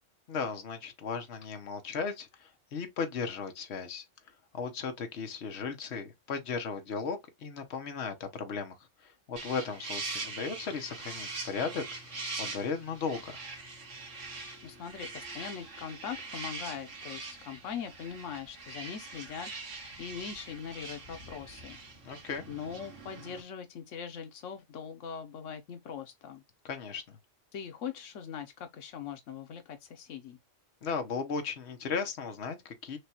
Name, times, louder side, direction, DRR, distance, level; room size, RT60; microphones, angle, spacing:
voice 1, 0.3-4.0 4.5-8.7 9.0-13.4 22.0-22.5 26.6-27.0 30.8-33.0, left 5 dB, 65° left, 1.2 m, -36 dB
sound 1, 9.4-23.4, right 3 dB, 85° right, 1.7 m, -42 dB
voice 2, 14.6-21.8 22.1-22.2 22.5-26.4 27.5-30.4, left 7 dB, 90° left, 1.1 m, -41 dB
6.4 x 2.3 x 2.9 m
omnidirectional pair, 1.3 m